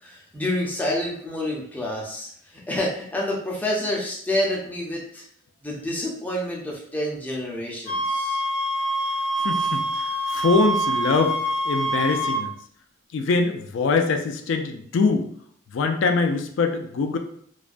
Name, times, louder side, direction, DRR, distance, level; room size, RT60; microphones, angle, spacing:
voice 1, 0.0-5.2 5.6-8.4, left 1 dB, 10° left, -4 dB, 0.5 m, -28 dB
sound 1, 7.9-12.4, right 1 dB, 85° right, 1.1 m, -25 dB
voice 2, 9.4-11.4 11.6-12.5 13.1-15.3 15.7-17.2, left 4 dB, 70° left, 5 dB, 0.3 m, -23 dB
2.3 x 2.2 x 2.5 m, 0.62 s
head